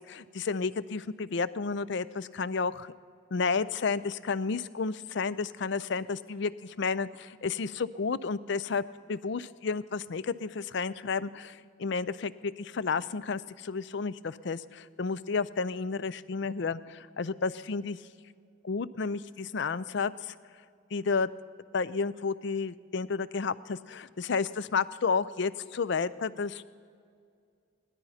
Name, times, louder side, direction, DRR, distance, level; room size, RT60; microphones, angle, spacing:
voice 1, 0.1-2.9 3.3-8.8 9.1-16.8 17.2-18.0 18.6-20.3 20.9-21.3 21.7-26.6, left 4 dB, 55° left, 17 dB, 0.5 m, -31 dB
18.0 x 12.5 x 5.7 m, 2.3 s
head